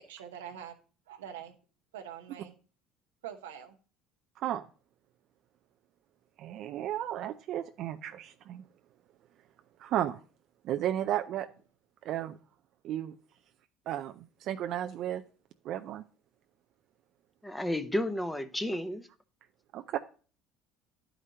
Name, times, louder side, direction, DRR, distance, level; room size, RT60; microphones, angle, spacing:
voice 1, 0.1-0.8 1.1-1.6 1.9-2.6 3.2-3.8, right 9 dB, 90° right, 5 dB, 0.8 m, -44 dB
voice 2, 6.4-8.6 9.8-10.2 10.6-11.5 12.1-12.4 12.8-13.1 13.9-15.2 15.7-16.0 19.7-20.0, right 11 dB, 60° right, 7 dB, 0.4 m, -33 dB
voice 3, 17.4-19.1, left 1 dB, 10° left, 10 dB, 0.8 m, -32 dB
11.0 x 5.0 x 2.8 m, 0.37 s
hypercardioid pair, 70°, 0 cm